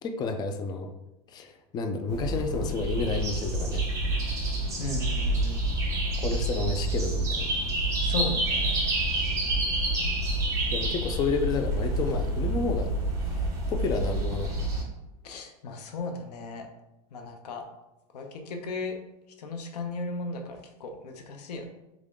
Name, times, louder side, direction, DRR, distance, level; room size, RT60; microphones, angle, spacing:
voice 1, 0.0-0.9 1.3-3.9 6.2-7.5 10.7-12.9 13.3-14.7, left 4 dB, 20° left, 5 dB, 0.4 m, -31 dB
sound 1, 2.1-14.8, right 2 dB, 15° right, 1.2 m, -28 dB
voice 2, 4.8-5.6 8.0-8.7 15.2-16.7 17.1-17.6 18.1-18.9 19.4-21.7, left 3 dB, 85° left, 4 dB, 0.9 m, -35 dB
3.6 x 3.6 x 3.7 m, 0.94 s
supercardioid pair, 140°, 20 cm